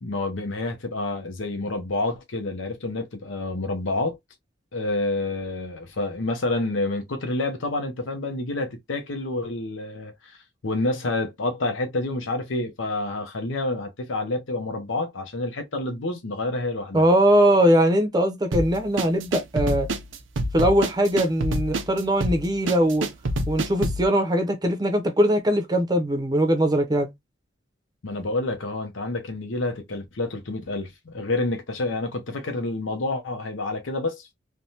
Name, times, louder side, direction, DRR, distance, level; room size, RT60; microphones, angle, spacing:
voice 1, 0.0-4.2 4.7-10.4 10.6-17.0 28.0-34.3, left 2 dB, 90° left, 0.7 m, -28 dB
voice 2, 16.9-19.9 20.5-23.1 23.5-27.1, equal, 20° right, 0.6 m, -21 dB
sound 1, 18.5-24.1, right 1 dB, 80° right, 0.6 m, -27 dB
3.3 x 2.2 x 2.7 m
head